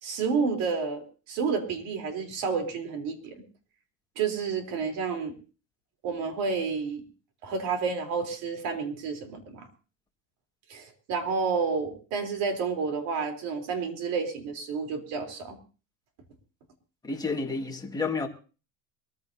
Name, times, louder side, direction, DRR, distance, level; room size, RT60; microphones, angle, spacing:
voice 1, 0.0-3.4 4.2-5.3 6.0-7.0 7.4-9.7 10.7-15.6, right 5 dB, 60° right, 3.6 m, -30 dB
voice 2, 17.0-18.3, left 4 dB, 10° left, 1.8 m, -30 dB
23.0 x 14.5 x 2.7 m
cardioid pair, 150°, 37 cm